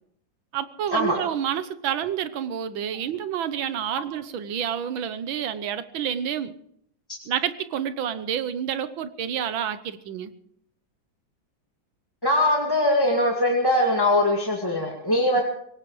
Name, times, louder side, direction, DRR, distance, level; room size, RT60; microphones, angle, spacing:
voice 1, 0.5-6.5 7.3-10.3, right 9 dB, 85° right, 12 dB, 1.7 m, -29 dB
voice 2, 12.2-15.4, left 1 dB, 10° left, -1 dB, 1.9 m, -21 dB
23.5 x 17.5 x 3.3 m, 0.69 s
omnidirectional pair, 2.1 m